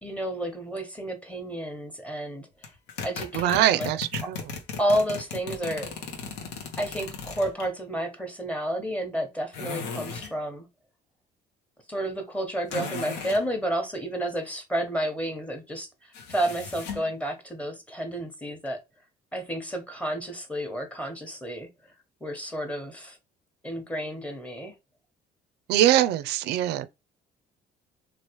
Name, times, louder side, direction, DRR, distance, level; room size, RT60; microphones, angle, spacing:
voice 1, 0.0-2.5 3.0-3.9 4.2-4.3 4.8-5.9 6.8-10.7 11.9-18.8 19.3-21.7 22.2-23.2 23.6-24.7, right 1 dB, 10° left, 0.9 m, -31 dB
sound 1, 2.6-7.7 9.5-10.4 12.7-13.4 16.1-17.1, left 5 dB, 90° left, 0.8 m, -36 dB
voice 2, 3.3-4.4 12.8-12.9 25.7-26.9, right 12 dB, 80° right, 0.4 m, -23 dB
3.1 x 2.4 x 2.9 m
cardioid pair, 110°, 17 cm